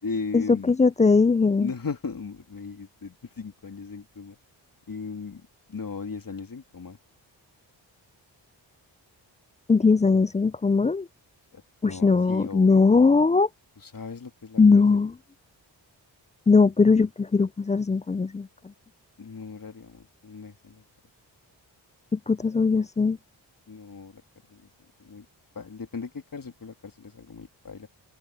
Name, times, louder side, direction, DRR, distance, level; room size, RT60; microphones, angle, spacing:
voice 1, 0.0-0.8 1.6-4.4 4.9-7.0 11.5-12.9 13.8-15.0 19.2-20.8 23.7-24.2 24.5-24.7 25.0-25.2 25.5-27.9, left 4 dB, 45° left, 3.0 m, -37 dB
voice 2, 0.7-1.7 9.7-11.1 11.8-13.5 14.6-15.1 16.5-18.5 22.1-23.2, left 4 dB, 15° left, 0.3 m, -20 dB
open air
cardioid pair, 45°, 46 cm